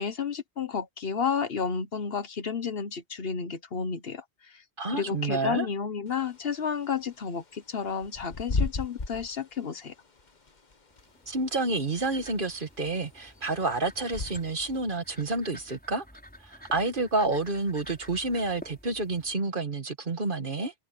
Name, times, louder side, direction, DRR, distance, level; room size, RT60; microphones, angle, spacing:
voice 1, 0.0-4.6 4.9-9.9, left 6 dB, 60° left, 1.2 m, -31 dB
voice 2, 4.8-5.7 11.3-16.0 16.4-20.7, right 3 dB, 50° right, 1.7 m, -29 dB
Bird / Wind, 6.1-14.8, left 3 dB, 40° left, 1.5 m, -37 dB
sound 1, 10.9-19.3, equal, 10° left, 5.4 m, -51 dB
open air
omnidirectional pair, 1.2 m